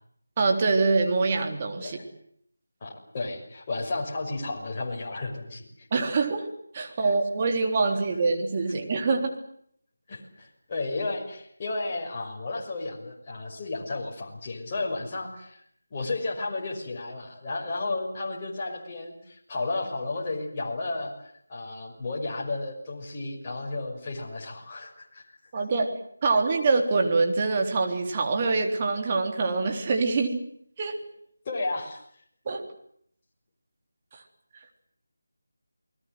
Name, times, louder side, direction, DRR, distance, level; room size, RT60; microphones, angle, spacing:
voice 1, 0.4-2.0 5.9-9.3 25.5-25.9 26.2-30.4 30.8-31.0 32.5-32.6 34.1-34.2, right 3 dB, 30° right, 3 dB, 3.6 m, -25 dB
voice 2, 2.8-5.9 7.0-7.1 10.1-15.6 15.9-25.2 31.4-32.0, left 2 dB, 30° left, -2 dB, 5.9 m, -33 dB
28.5 x 20.5 x 7.9 m, 0.67 s
figure-of-eight pair, 165°, 0 cm